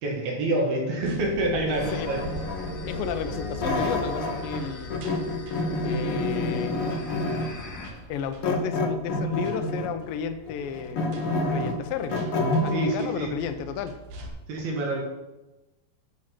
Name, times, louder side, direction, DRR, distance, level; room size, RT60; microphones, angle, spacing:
voice 1, 0.0-2.2 12.7-13.3 14.5-15.0, right 1 dB, 80° right, -1 dB, 3.7 m, -27 dB
sound 1, 1.0-14.3, equal, 60° right, 2.6 m, -43 dB
voice 2, 1.7-2.1 2.9-5.0 5.8-6.8 8.1-11.0 11.4-12.3 12.6-14.0, left 7 dB, 75° left, 7 dB, 2.4 m, -32 dB
sound 2, 1.7-7.9, left 3 dB, 35° left, 1.8 m, -44 dB
sound 3, 1.8-4.6 4.9-7.6 8.4-10.0 10.5-13.0, left 2 dB, 55° left, 1.6 m, -28 dB
11.5 x 6.3 x 6.0 m, 1.0 s
omnidirectional pair, 4.3 m